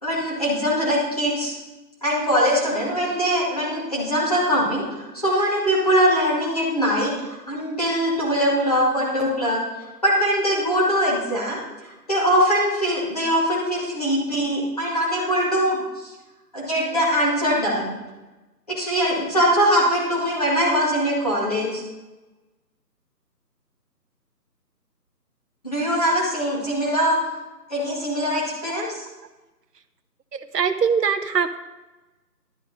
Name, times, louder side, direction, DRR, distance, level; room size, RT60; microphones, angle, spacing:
voice 1, 0.0-1.5 2.0-9.6 10.0-16.1 16.5-17.9 18.7-21.8 25.6-27.2 27.7-29.0, equal, 25° left, -6 dB, 2.1 m, -22 dB
voice 2, 30.3-31.6, right 6 dB, 75° right, 7 dB, 0.9 m, -22 dB
11.5 x 7.4 x 5.3 m, 1.1 s
figure-of-eight pair, 180°, 50 cm